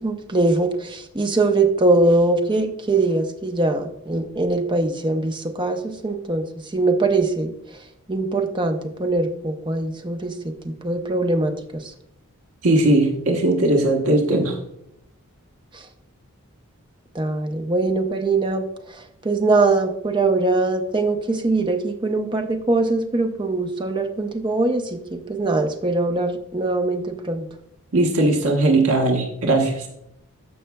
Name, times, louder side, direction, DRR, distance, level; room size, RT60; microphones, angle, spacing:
voice 1, 0.0-6.4 6.7-7.5 8.1-10.3 10.6-11.5 17.2-18.6 19.2-27.4, right 2 dB, 20° right, 6 dB, 0.6 m, -22 dB
voice 2, 12.6-14.6 27.9-29.9, right 2 dB, 85° right, 2 dB, 1.1 m, -19 dB
14.0 x 5.7 x 2.2 m, 0.78 s
head